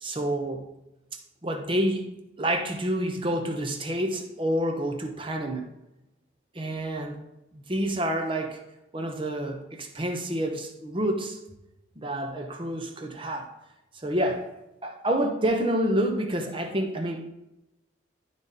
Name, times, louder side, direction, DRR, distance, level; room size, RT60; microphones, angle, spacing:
voice 1, 0.0-0.7 1.4-2.1 2.4-5.7 6.5-7.2 7.5-8.6 8.9-11.4 12.0-13.5 14.0-14.5 14.8-17.3, right 1 dB, 25° right, 4 dB, 0.8 m, -28 dB
11.0 x 4.1 x 3.6 m, 0.94 s
head